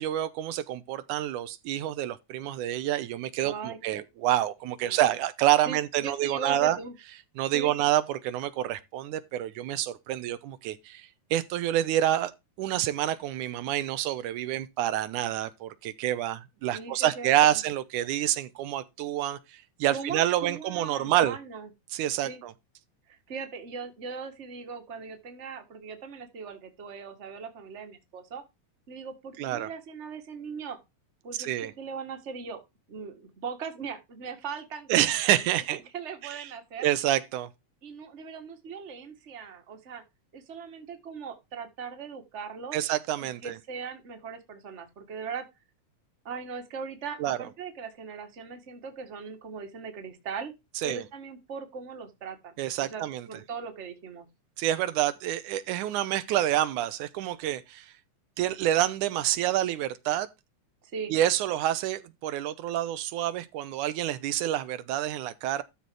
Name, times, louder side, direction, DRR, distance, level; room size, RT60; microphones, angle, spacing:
voice 1, 0.0-6.8 7.4-12.3 12.6-21.4 21.9-22.5 29.4-29.7 31.4-31.7 34.9-35.8 36.2-36.5 36.8-37.5 42.7-43.6 47.2-47.4 50.8-51.0 52.6-53.3 54.6-57.9 58.4-60.3 61.1-65.6, right 12 dB, 90° right, 2.3 m, -28 dB
voice 2, 3.4-3.8 4.8-5.1 5.7-6.9 7.5-7.8 16.7-17.6 19.9-21.7 22.2-22.4 23.1-28.4 28.9-30.8 31.2-32.6 32.9-35.0 35.3-36.9 37.8-40.0 40.3-42.8 43.2-45.4 46.2-50.5 50.8-54.3 60.8-61.1, right 5 dB, 30° right, 1.5 m, -39 dB
13.0 x 4.3 x 4.7 m
omnidirectional pair, 3.5 m